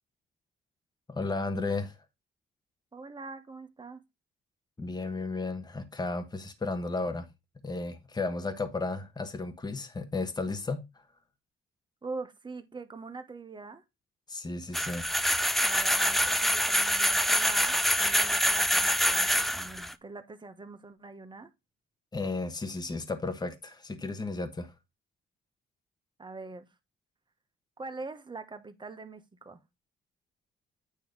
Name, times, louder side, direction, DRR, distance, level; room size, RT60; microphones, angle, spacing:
voice 1, 1.1-2.0 4.8-7.3 7.6-10.9 14.3-15.1 22.1-24.7, left 3 dB, 20° left, 1.3 m, -34 dB
voice 2, 2.9-4.0 12.0-13.8 15.6-21.5 26.2-26.7 27.8-29.6, right 3 dB, 25° right, 1.2 m, -43 dB
sound 1, 14.7-19.9, equal, ahead, 0.5 m, -25 dB
9.1 x 3.2 x 5.2 m
cardioid pair, 90°, 20 cm